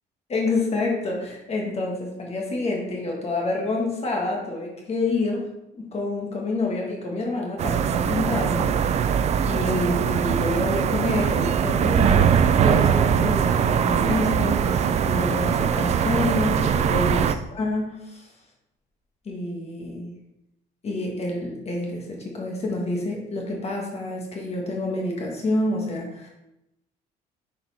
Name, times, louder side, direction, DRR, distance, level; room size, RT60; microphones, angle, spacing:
voice 1, 0.3-5.5 5.7-8.7 9.0-9.2 9.5-18.2 19.2-20.1 20.8-26.3, left 2 dB, 40° left, -1 dB, 1.4 m, -28 dB
sound 1, 7.6-17.3, right 8 dB, 40° right, 0.4 m, -21 dB
6.0 x 4.2 x 4.1 m, 0.88 s
cardioid pair, 110°, 17 cm